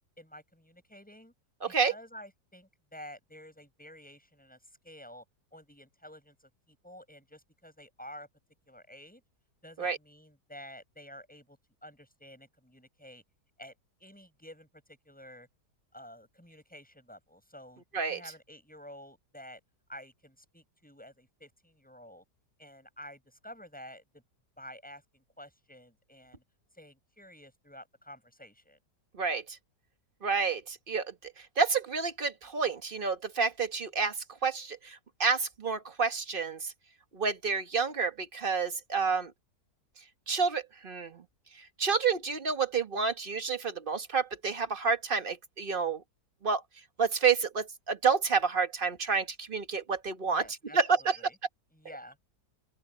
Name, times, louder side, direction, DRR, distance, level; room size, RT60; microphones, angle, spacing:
voice 1, 0.2-1.3 1.7-5.2 5.5-8.3 8.7-9.2 9.6-13.2 13.6-15.5 15.9-19.6 19.9-22.2 22.6-24.2 24.6-26.4 26.7-28.8 50.2-51.4 51.7-52.2, equal, 5° left, 7.8 m, -50 dB
voice 2, 1.6-1.9 9.8-10.0 17.9-18.2 29.1-29.6 30.2-36.7 37.1-39.3 40.3-41.2 41.5-46.0 46.4-46.6 47.0-50.4 50.7-51.2, right 5 dB, 35° right, 1.3 m, -29 dB
open air
omnidirectional pair, 1.8 m